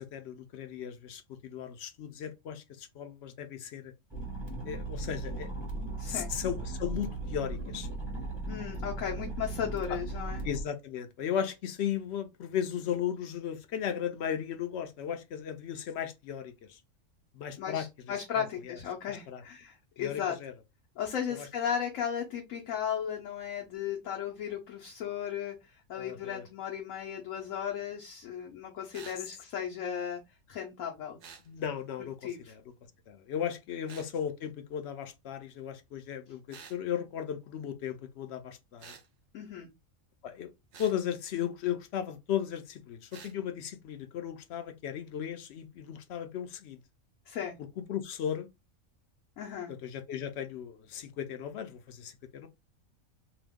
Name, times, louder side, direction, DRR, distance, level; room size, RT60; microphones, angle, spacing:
voice 1, 0.0-3.9 4.7-5.5 6.1-7.9 9.9-10.0 10.4-16.8 17.3-17.8 18.4-18.8 19.1-19.4 20.0-20.5 21.3-21.5 25.9-26.4 31.5-32.2 32.5-32.6 33.1-39.0 40.2-40.5 40.8-46.8 47.9-48.5 49.8-52.5, left 9 dB, 65° left, 0.7 m, -36 dB
sound 1, 4.1-10.6, right 2 dB, 25° right, 0.9 m, -37 dB
voice 2, 6.0-6.3 8.5-10.4 17.6-20.4 21.0-25.6 25.9-30.2 30.5-31.2 32.2-32.5 39.3-39.7 47.3-47.6 49.4-49.7, left 8 dB, 85° left, 1.0 m, -35 dB
sound 2, 28.9-29.2 31.2-31.5 33.9-34.1 36.5-36.8 38.8-39.1 40.7-41.0 43.1-43.3, right 6 dB, 65° right, 1.0 m, -49 dB
2.8 x 2.1 x 3.4 m
omnidirectional pair, 1.3 m